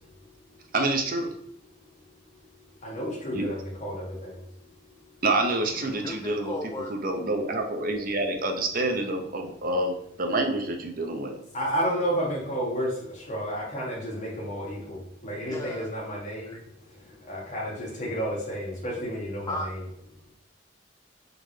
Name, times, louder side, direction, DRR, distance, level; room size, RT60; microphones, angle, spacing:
voice 1, 0.7-1.3 3.3-3.4 5.2-6.5 6.9-11.4, right 2 dB, 50° right, 4 dB, 0.6 m, -27 dB
voice 2, 2.8-4.4 11.5-16.5 17.1-19.7, equal, 40° left, -4 dB, 1.6 m, -31 dB
voice 3, 5.7-6.9 15.3-15.9 16.5-16.6 17.1-17.2 19.5-19.7, left 2 dB, 20° left, 1 dB, 0.4 m, -36 dB
3.8 x 3.7 x 3.2 m, 0.71 s
head